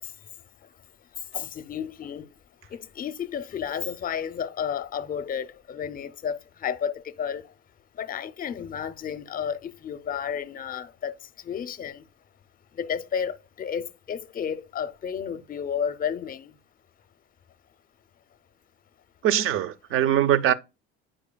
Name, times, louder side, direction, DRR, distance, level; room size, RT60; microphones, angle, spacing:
voice 1, 1.3-2.3 2.7-7.4 8.0-11.1 11.5-12.0 12.8-16.5, left 8 dB, 30° left, 0.6 m, -32 dB
voice 2, 19.2-20.5, right 11 dB, 45° right, 0.5 m, -22 dB
8.8 x 4.8 x 2.2 m
hypercardioid pair, 70°, 31 cm